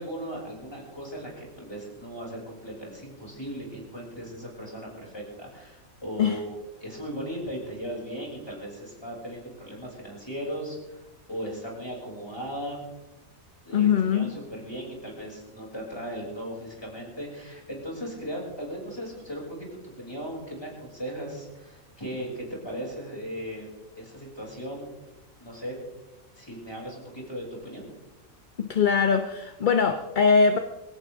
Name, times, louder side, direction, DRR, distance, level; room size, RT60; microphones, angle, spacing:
voice 1, 0.0-6.5 6.8-12.8 13.6-23.7 24.0-25.0 25.4-25.8 26.3-27.8, equal, 15° left, -3 dB, 6.6 m, -37 dB
voice 2, 13.7-14.3 28.6-30.6, left 6 dB, 40° left, 7 dB, 0.9 m, -22 dB
22.5 x 17.0 x 3.6 m, 1.0 s
omnidirectional pair, 1.5 m